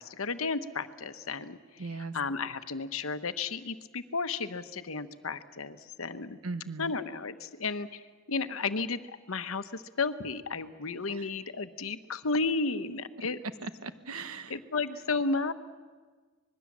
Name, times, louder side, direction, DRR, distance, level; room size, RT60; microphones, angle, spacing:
voice 1, 0.0-1.6 2.1-6.4 6.8-8.0 8.3-13.4 14.5-15.5, left 4 dB, 70° left, 11 dB, 1.0 m, -33 dB
voice 2, 1.8-2.1 6.4-6.9 11.1-11.3 13.2-13.3 13.6-14.6, right 3 dB, 85° right, 11 dB, 1.2 m, -39 dB
25.5 x 21.0 x 7.4 m, 1.5 s
head